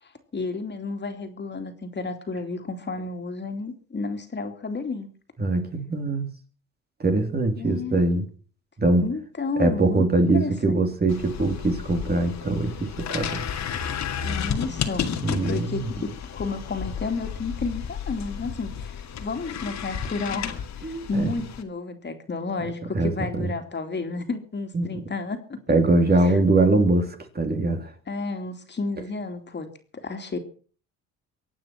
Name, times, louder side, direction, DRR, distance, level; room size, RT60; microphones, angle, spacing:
voice 1, 0.0-5.1 7.6-8.0 9.0-10.1 10.3-10.8 14.2-15.1 15.5-25.6 26.2-26.4 28.1-29.7 29.9-30.4, left 4 dB, 35° left, 7 dB, 2.8 m, -31 dB
voice 2, 5.4-6.2 7.0-8.3 8.8-9.1 9.6-13.4 15.2-15.9 20.8-21.4 22.6-22.7 22.9-23.5 24.7-25.0 25.7-27.9, right 2 dB, 30° right, 5 dB, 3.2 m, -22 dB
sound 1, 11.1-21.6, left 7 dB, 65° left, 2.3 m, -32 dB
23.5 x 9.1 x 5.9 m, 0.43 s
cardioid pair, 90°, 30 cm